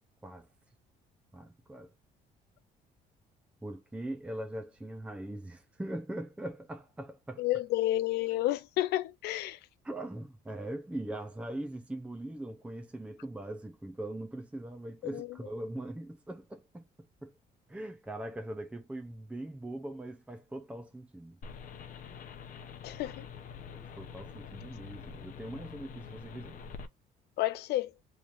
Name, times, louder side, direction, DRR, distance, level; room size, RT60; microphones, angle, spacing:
voice 1, 1.3-1.9 3.6-7.5 9.8-16.8 17.2-17.3 17.7-21.4 24.0-26.6, right 1 dB, 5° right, 0.5 m, -41 dB
voice 2, 7.4-9.6 15.1-15.3 22.8-23.2 27.4-27.9, left 15 dB, 75° left, 0.5 m, -30 dB
sound 1, 21.4-26.9, left 6 dB, 55° left, 0.8 m, -46 dB
3.7 x 3.2 x 2.5 m
cardioid pair, 110°, 17 cm